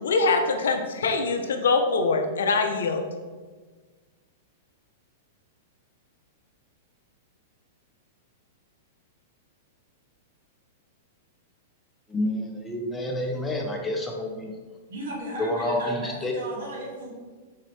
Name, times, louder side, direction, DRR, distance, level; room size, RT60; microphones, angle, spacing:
voice 1, 0.0-3.0, left 4 dB, 85° left, 5 dB, 0.5 m, -23 dB
voice 2, 12.1-14.5 15.4-16.3, left 1 dB, 10° left, 0 dB, 0.6 m, -28 dB
voice 3, 14.9-17.1, right 1 dB, 75° right, -4 dB, 1.3 m, -36 dB
4.0 x 2.6 x 3.1 m, 1.4 s
hypercardioid pair, 130°, 0 cm